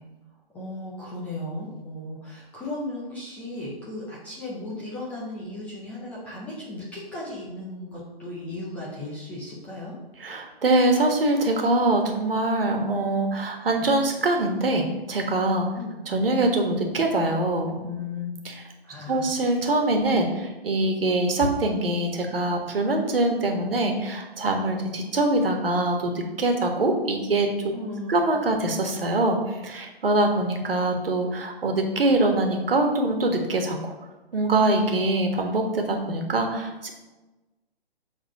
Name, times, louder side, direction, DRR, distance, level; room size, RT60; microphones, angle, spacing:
voice 1, 0.5-9.9 15.7-16.0 18.9-19.3 27.7-28.2, left 1 dB, 5° left, -7 dB, 0.5 m, -36 dB
voice 2, 10.2-15.7 16.1-18.7 19.1-27.7 28.1-33.9 34.3-36.9, right 2 dB, 65° right, 3 dB, 1.5 m, -24 dB
7.1 x 3.8 x 4.8 m, 1.1 s
figure-of-eight pair, 135°, 31 cm